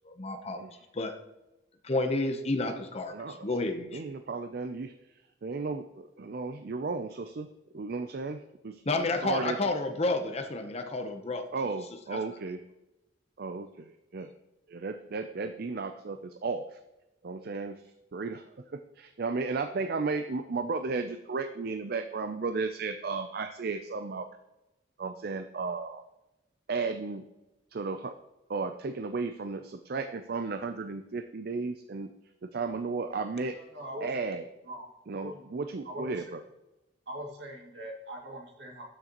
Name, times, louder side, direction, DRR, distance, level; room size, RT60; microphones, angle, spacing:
voice 1, 0.1-0.6 0.9-1.1 1.8-3.1 3.4-4.0 8.9-11.4 12.1-12.2, left 2 dB, 35° left, 7 dB, 0.8 m, -30 dB
voice 2, 3.1-3.5 3.9-4.9 5.4-7.5 7.7-8.8 9.2-9.6 11.5-12.6 13.4-14.3 14.7-16.8 17.2-17.8 18.1-24.3 25.0-26.0 26.7-27.2 27.7-28.1 28.5-32.1 32.4-33.5 34.0-34.4 35.1-36.4, right 4 dB, 55° right, 9 dB, 0.5 m, -34 dB
voice 3, 33.5-34.1 34.7-34.9 35.2-35.4 35.8-36.1 37.1-38.8, equal, 75° right, -1 dB, 2.3 m, -41 dB
12.5 x 6.5 x 3.0 m, 0.96 s
head